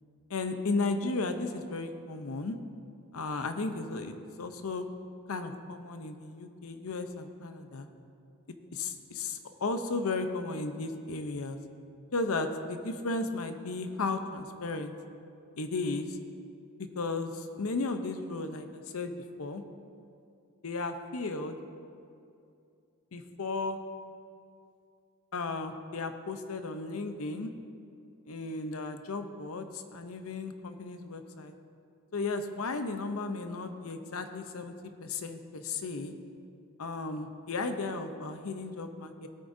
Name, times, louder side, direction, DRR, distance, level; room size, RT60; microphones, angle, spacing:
voice 1, 0.3-2.6 3.1-4.9 5.3-7.9 8.7-11.6 12.1-14.9 15.6-16.2 16.9-19.1 19.4-19.6 20.6-21.6 23.1-23.8 25.3-27.5 28.3-31.5 32.1-34.7 35.0-36.1 36.8-39.3, left 3 dB, 75° left, 8 dB, 0.7 m, -34 dB
17.0 x 8.6 x 2.7 m, 2.6 s
head